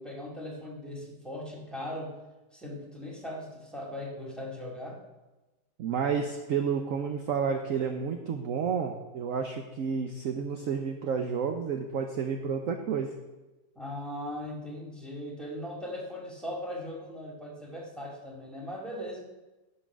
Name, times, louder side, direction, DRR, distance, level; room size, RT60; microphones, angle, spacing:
voice 1, 0.0-2.2 2.5-5.0 13.8-19.2, left 1 dB, ahead, -2 dB, 1.8 m, -39 dB
voice 2, 5.8-13.2, right 6 dB, 60° right, 4 dB, 0.9 m, -30 dB
11.5 x 5.5 x 6.0 m, 1.1 s
omnidirectional pair, 1.9 m